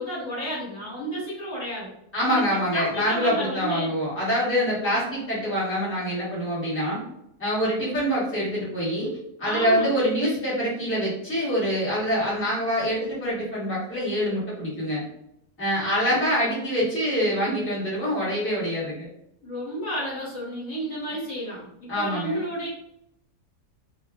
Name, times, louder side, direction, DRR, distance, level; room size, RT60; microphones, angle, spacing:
voice 1, 0.0-1.9 2.2-2.4 2.7-3.9 9.4-9.9 19.4-22.7, right 1 dB, 55° left, -7 dB, 1.3 m, -31 dB
voice 2, 2.1-7.0 7.4-15.0 15.6-19.1 21.9-22.4, equal, 10° left, -9 dB, 0.9 m, -25 dB
2.7 x 2.4 x 2.2 m, 0.78 s
omnidirectional pair, 1.7 m